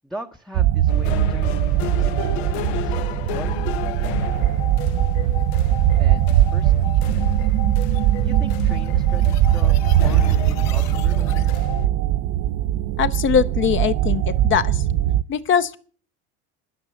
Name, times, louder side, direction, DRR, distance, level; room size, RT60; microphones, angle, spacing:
voice 1, 0.0-4.2 6.0-7.3 8.2-11.7, equal, ahead, 0.7 m, -40 dB
sound 1, 0.5-15.2, right 12 dB, 50° right, 0.5 m, -20 dB
sound 2, 0.9-11.9, left 9 dB, 90° left, 0.9 m, -32 dB
sound 3, 3.6-11.7, left 8 dB, 60° left, 1.4 m, -45 dB
voice 2, 13.0-14.8 15.3-15.8, left 8 dB, 40° left, 0.7 m, -21 dB
10.0 x 9.5 x 6.9 m
supercardioid pair, 120°, 32 cm